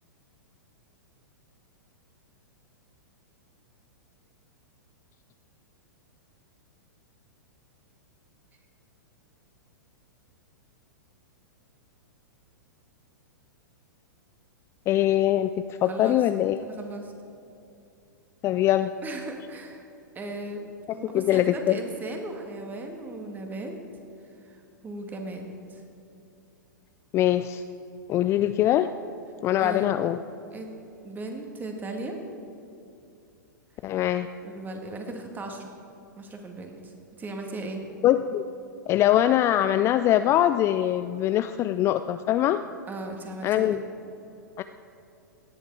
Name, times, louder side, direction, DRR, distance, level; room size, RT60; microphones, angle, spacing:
voice 1, 14.9-15.5 15.8-16.6 18.4-18.9 21.1-21.8 27.1-27.6 28.1-28.9 29.4-30.2 33.8-34.3 38.0-38.4 38.9-42.6 43.4-43.8 44.6-44.7, left 12 dB, 25° left, 11 dB, 0.3 m, -22 dB
voice 2, 15.9-16.2 16.6-17.1 19.0-19.9 20.2-20.7 20.9-23.7 24.4-24.6 24.8-25.8 29.6-29.9 30.5-30.7 31.0-32.2 33.9-34.0 34.4-35.7 36.2-37.8 42.9-43.8, right 2 dB, 15° right, 3 dB, 1.8 m, -37 dB
17.5 x 10.0 x 4.8 m, 2.7 s
figure-of-eight pair, 105°, 11 cm